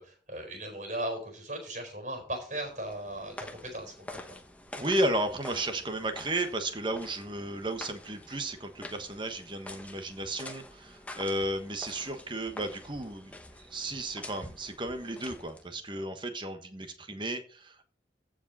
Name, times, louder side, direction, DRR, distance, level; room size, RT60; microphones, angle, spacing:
voice 1, 0.0-4.4, right 1 dB, 40° right, 4 dB, 4.4 m, -38 dB
sound 1, 2.5-15.8, left 1 dB, 10° left, 0.9 m, -47 dB
voice 2, 4.8-13.3 13.7-17.8, right 1 dB, 25° right, 7 dB, 1.3 m, -33 dB
15.0 x 5.1 x 4.1 m, 0.39 s
head